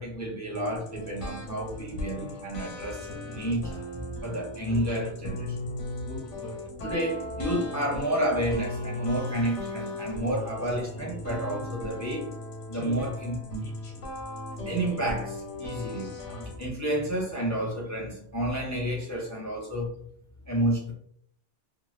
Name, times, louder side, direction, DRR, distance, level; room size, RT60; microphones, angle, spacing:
voice 1, 0.0-3.7 4.2-5.6 6.8-12.3 12.7-13.4 14.7-16.1 16.6-20.0 20.5-20.9, right 1 dB, 25° left, -3 dB, 0.4 m, -30 dB
sound 1, 0.5-16.7, left 1 dB, 80° left, 1.2 m, -37 dB
2.6 x 2.5 x 3.1 m, 0.65 s
omnidirectional pair, 1.2 m